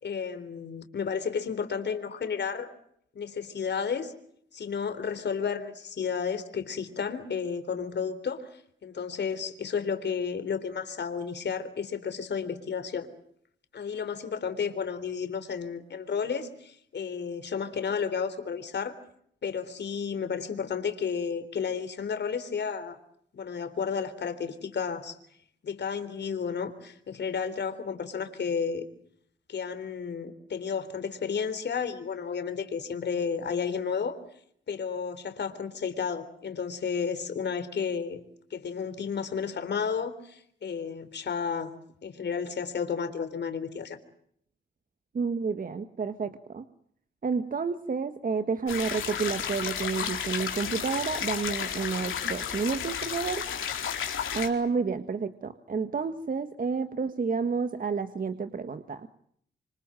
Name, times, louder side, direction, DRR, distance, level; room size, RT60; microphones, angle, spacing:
voice 1, 0.0-2.7 3.2-4.1 4.5-13.1 13.7-19.0 19.4-23.0 23.3-25.2 25.6-28.9 29.5-34.2 34.7-38.2 38.5-44.0, left 6 dB, 60° left, 9 dB, 3.6 m, -32 dB
voice 2, 45.1-46.6 47.2-53.4 54.3-59.1, right 5 dB, 45° right, 9 dB, 1.6 m, -30 dB
sound 1, 48.7-54.5, left 8 dB, 90° left, 4.6 m, -32 dB
27.0 x 26.0 x 7.6 m, 0.68 s
cardioid pair, 95°, 20 cm